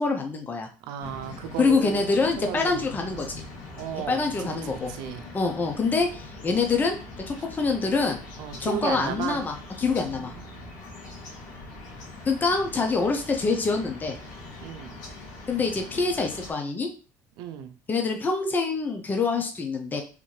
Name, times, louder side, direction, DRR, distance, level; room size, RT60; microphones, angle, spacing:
voice 1, 0.0-0.7 1.6-3.3 4.1-4.9 5.3-7.0 7.3-8.2 8.6-10.3 12.3-14.2 15.5-16.9 17.9-20.0, left 4 dB, 25° left, 3 dB, 0.7 m, -25 dB
voice 2, 0.8-3.4 3.8-5.2 8.4-9.4 9.8-10.8 14.6-15.0 17.4-17.7, right 8 dB, 80° right, 9 dB, 0.5 m, -35 dB
sound 1, 1.0-16.5, left 2 dB, 70° left, 1.8 m, -42 dB
3.6 x 2.6 x 3.1 m, 0.35 s
supercardioid pair, 100°, 7 cm